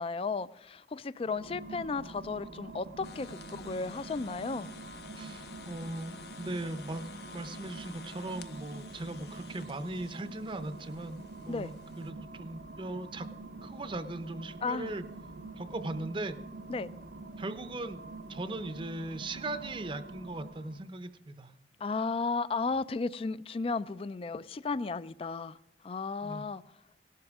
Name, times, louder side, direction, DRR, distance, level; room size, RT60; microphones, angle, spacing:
voice 1, 0.0-4.7 11.5-11.7 14.6-14.9 16.7-16.9 21.8-25.6 25.8-26.6, left 4 dB, 30° left, 17 dB, 0.3 m, -34 dB
sound 1, 1.1-20.9, right 3 dB, 90° right, 0.9 m, -46 dB
sound 2, 3.0-12.1, left 5 dB, 60° left, 0.7 m, -51 dB
voice 2, 5.2-13.3 13.6-15.0 15.6-16.4 17.4-18.0 18.3-21.5 26.2-26.4, right 2 dB, 30° right, 10 dB, 0.6 m, -39 dB
18.0 x 12.0 x 3.5 m, 0.88 s
head